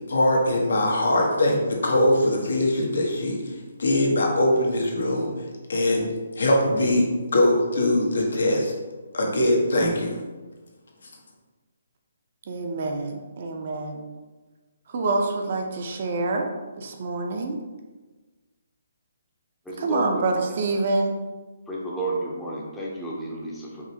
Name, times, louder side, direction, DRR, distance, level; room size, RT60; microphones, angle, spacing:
voice 1, 0.1-3.5 3.8-5.3 5.7-6.1 6.4-7.1 7.3-8.7 9.1-10.2, left 1 dB, 80° left, 0 dB, 1.0 m, -21 dB
voice 2, 12.5-14.0 14.9-16.5 16.8-17.6 19.8-21.1, right 3 dB, 45° right, 3 dB, 0.5 m, -26 dB
voice 3, 19.6-20.5 21.7-23.9, right 1 dB, 5° left, -6 dB, 0.6 m, -32 dB
4.9 x 3.0 x 2.8 m, 1.3 s
hypercardioid pair, 170°, 0 cm